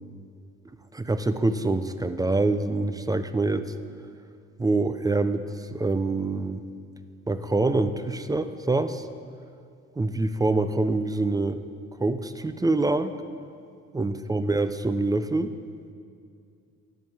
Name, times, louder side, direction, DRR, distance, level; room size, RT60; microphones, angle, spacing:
voice 1, 0.9-3.7 4.6-6.6 7.3-9.1 10.0-11.6 12.0-13.1 13.9-15.5, right 2 dB, 15° right, 11 dB, 0.4 m, -25 dB
11.0 x 4.6 x 7.6 m, 2.3 s
cardioid pair, 90°, 30 cm